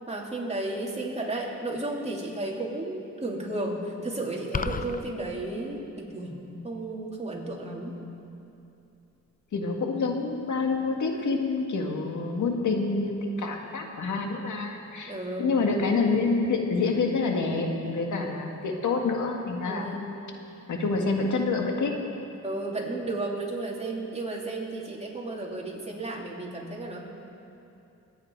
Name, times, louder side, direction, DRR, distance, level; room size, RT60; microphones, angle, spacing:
voice 1, 0.1-6.4 6.6-8.0 15.1-15.5 19.6-20.1 22.4-27.0, right 2 dB, 20° right, -2 dB, 3.1 m, -33 dB
sound 1, 4.5-5.0, left 5 dB, 25° left, 0.6 m, -30 dB
voice 2, 9.5-15.1 15.4-19.9 20.7-21.9, left 3 dB, 70° left, 2 dB, 2.1 m, -27 dB
24.5 x 9.5 x 4.8 m, 2.7 s
cardioid pair, 75°, 31 cm